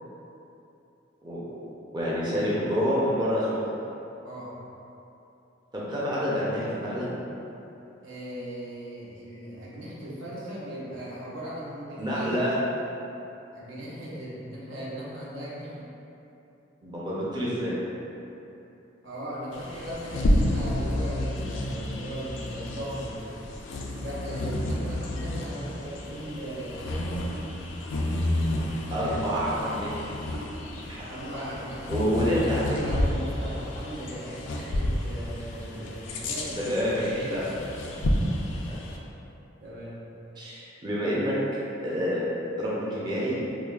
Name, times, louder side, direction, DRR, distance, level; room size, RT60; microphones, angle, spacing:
voice 1, 1.9-3.6 5.7-7.1 12.0-12.5 16.8-17.8 28.9-29.9 30.9-31.0 31.9-33.0 36.5-37.4 38.7-38.8 40.4-41.3 41.8-42.2 42.6-43.4, equal, 25° right, -8 dB, 0.5 m, -27 dB
voice 2, 8.0-12.3 13.5-15.8 19.0-23.3 24.0-27.2 31.1-38.0 38.4-38.8 39.6-40.0, equal, 85° right, -7 dB, 0.9 m, -38 dB
Bird vocalization bird call bird song, 19.5-39.0, left 1 dB, 85° left, 0.4 m, -30 dB
4.8 x 2.3 x 2.3 m, 2.9 s
head